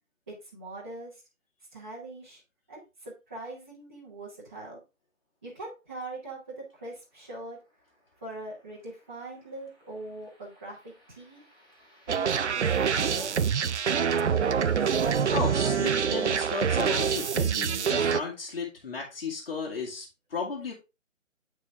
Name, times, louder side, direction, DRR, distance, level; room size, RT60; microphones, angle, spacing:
voice 1, 0.3-1.2 1.7-2.4 2.7-4.8 5.4-7.6 8.2-11.4 12.1-13.4, right 2 dB, 10° right, -10 dB, 1.0 m, -42 dB
sound 1, 7.0-17.3, equal, 15° left, 2.1 m, -54 dB
sound 2, 12.1-18.2, right 7 dB, 60° right, 0.5 m, -25 dB
voice 2, 15.3-20.7, left 4 dB, 45° left, -1 dB, 1.9 m, -34 dB
8.9 x 4.7 x 3.4 m, 0.27 s
figure-of-eight pair, 170°, 40 cm